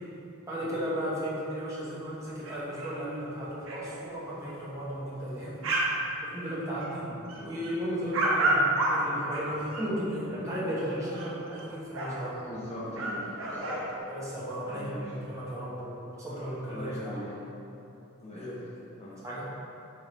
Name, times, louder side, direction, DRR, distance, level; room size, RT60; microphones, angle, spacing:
voice 1, 0.5-5.5 6.3-7.1 7.4-12.5 14.1-17.2 18.3-18.6 19.2-19.4, equal, 15° right, -9 dB, 0.8 m, -35 dB
sound 1, 2.4-2.9 3.3-3.4 3.6-3.8 4.5-4.6 5.0-6.0 6.2-6.9 7.3-9.9 10.8-11.6 11.9-12.1 12.7-12.8 12.9-13.9, right 2 dB, 65° right, 0.7 m, -30 dB
voice 2, 12.5-13.7 14.7-15.0 16.7-17.3 18.2-18.4 19.0-19.1, equal, 30° left, -8 dB, 0.6 m, -40 dB
4.1 x 3.5 x 3.0 m, 2.9 s
head